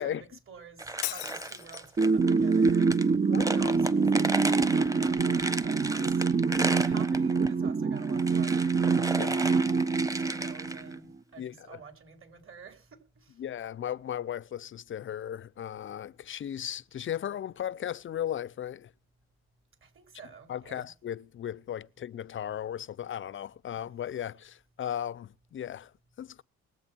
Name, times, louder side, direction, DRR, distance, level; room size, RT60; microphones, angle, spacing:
voice 1, 0.0-6.3 6.5-13.4 19.8-20.9 23.7-23.8, right 5 dB, 45° right, 4.2 m, -50 dB
sound 1, 0.8-7.5 8.0-10.9, right 2 dB, 10° right, 1.3 m, -35 dB
Shatter, 1.0-2.0, left 20 dB, 85° left, 0.6 m, -37 dB
sound 2, 2.0-11.0, right 4 dB, 25° right, 0.7 m, -25 dB
voice 2, 11.4-11.8 13.4-18.9 20.5-25.9 26.2-26.4, left 10 dB, 40° left, 0.6 m, -36 dB
21.5 x 8.0 x 4.5 m
supercardioid pair, 70°, 29 cm